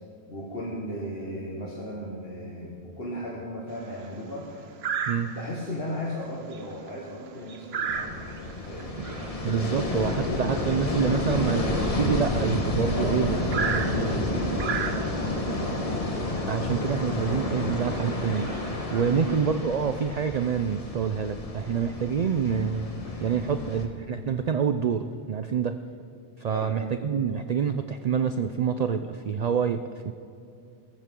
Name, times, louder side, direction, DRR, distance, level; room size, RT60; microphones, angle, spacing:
voice 1, 0.3-4.7 5.3-9.0 12.9-15.8 19.0-19.4 23.3-23.7 26.5-26.8, equal, 55° left, -4 dB, 1.8 m, -36 dB
sound 1, 3.7-4.1 4.8-5.6 6.1-6.2 6.5-12.8 13.5-15.4 16.4-16.5 16.9-17.0 17.6-17.8 18.2-19.4, right 6 dB, 60° right, 1.0 m, -35 dB
sound 2, 7.9-23.9, left 2 dB, 30° left, 1.3 m, -30 dB
voice 2, 9.4-14.4 16.5-18.6 18.9-22.9 23.2-25.8 26.4-30.1, right 7 dB, 80° right, 9 dB, 0.3 m, -27 dB
21.0 x 14.0 x 3.7 m, 2.6 s
omnidirectional pair, 1.3 m